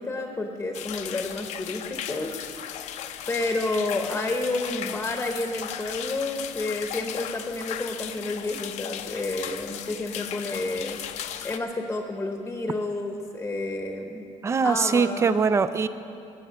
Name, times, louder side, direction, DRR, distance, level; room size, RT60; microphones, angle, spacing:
voice 1, 0.0-2.7 3.3-11.0 11.4-14.3 14.6-15.5, left 2 dB, 15° left, 4 dB, 0.9 m, -30 dB
sound 1, 0.7-11.6, left 10 dB, 65° left, 0.6 m, -36 dB
voice 2, 14.4-15.9, right 5 dB, 20° right, 13 dB, 0.4 m, -22 dB
19.5 x 8.4 x 5.7 m, 2.6 s
cardioid pair, 150°, 13 cm